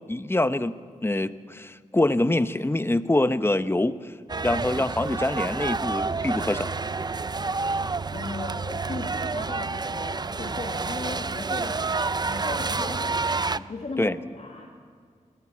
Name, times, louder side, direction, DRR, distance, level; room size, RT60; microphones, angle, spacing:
voice 1, 0.1-0.7 1.0-4.1 4.4-6.8 14.0-14.2, left 1 dB, 15° left, 12 dB, 0.8 m, -25 dB
sound 1, 4.3-13.6, right 4 dB, 30° right, 0.5 m, -29 dB
voice 2, 8.1-11.9 12.2-14.7, left 3 dB, 55° left, 1 dB, 2.1 m, -37 dB
19.5 x 16.5 x 8.5 m, 2.1 s
cardioid pair, 55°, 13 cm